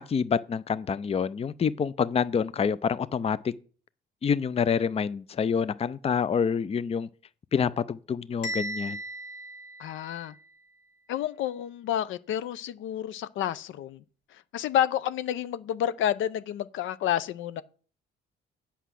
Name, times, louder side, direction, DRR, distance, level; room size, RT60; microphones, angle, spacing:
voice 1, 0.0-3.5 4.2-7.1 7.5-9.0, left 6 dB, 30° left, 0.5 m, -27 dB
Bell, 8.4-10.5, right 1 dB, 65° left, 2.8 m, -37 dB
voice 2, 9.8-10.4 11.1-14.0 14.5-17.6, left 11 dB, 80° left, 0.6 m, -29 dB
8.2 x 5.7 x 7.6 m
cardioid pair, 90°, 20 cm